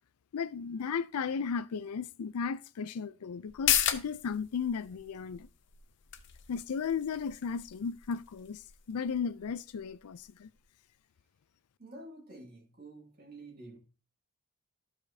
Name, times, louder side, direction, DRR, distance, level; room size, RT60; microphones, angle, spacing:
voice 1, 0.3-5.5 6.5-8.6 8.9-10.5, left 6 dB, 90° left, 0.4 m, -35 dB
sound 1, 3.5-10.6 10.9-11.0, left 11 dB, 55° left, 0.7 m, -36 dB
voice 2, 11.8-13.8, right 2 dB, 45° right, 2.3 m, -49 dB
13.5 x 5.0 x 2.7 m
head